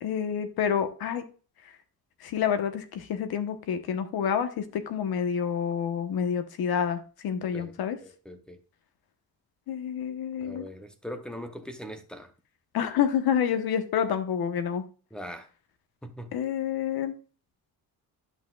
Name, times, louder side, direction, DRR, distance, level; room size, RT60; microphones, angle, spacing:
voice 1, 0.0-1.2 2.2-8.0 9.7-10.7 12.7-14.8 16.3-17.1, left 8 dB, 85° left, 9 dB, 1.1 m, -28 dB
voice 2, 8.0-8.6 10.4-12.3 15.1-15.5 16.0-16.3, equal, ahead, 7 dB, 0.7 m, -41 dB
11.0 x 5.9 x 2.3 m, 0.38 s
wide cardioid pair, 175°, 36 cm